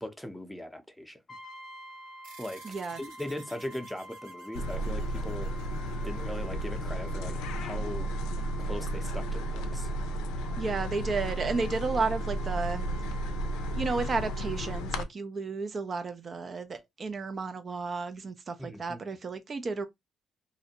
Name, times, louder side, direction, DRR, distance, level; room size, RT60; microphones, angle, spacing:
voice 1, 0.0-1.2 2.4-2.6 3.0-5.5 6.0-8.1 8.6-9.9 18.6-19.0, left 1 dB, 5° left, 0.6 m, -39 dB
Brass instrument, 1.3-14.9, equal, 50° left, 0.7 m, -49 dB
sound 1, 2.2-7.1, right 5 dB, 85° right, 0.6 m, -55 dB
voice 2, 2.6-3.0 10.4-12.9 13.7-19.9, right 4 dB, 45° right, 0.4 m, -32 dB
sound 2, 4.5-15.0, right 1 dB, 85° left, 0.4 m, -33 dB
2.5 x 2.1 x 2.8 m
supercardioid pair, 65°, 0 cm